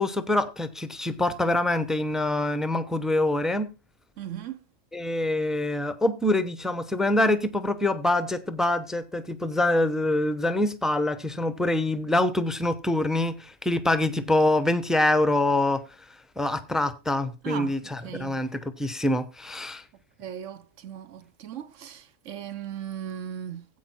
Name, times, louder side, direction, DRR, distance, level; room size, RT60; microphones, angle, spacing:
voice 1, 0.0-3.7 4.9-15.8 16.4-19.8, left 1 dB, ahead, 0.5 m, -25 dB
voice 2, 4.2-4.6 17.4-18.4 20.2-23.6, right 9 dB, 65° right, 1.1 m, -37 dB
16.0 x 5.4 x 4.4 m
omnidirectional pair, 1.5 m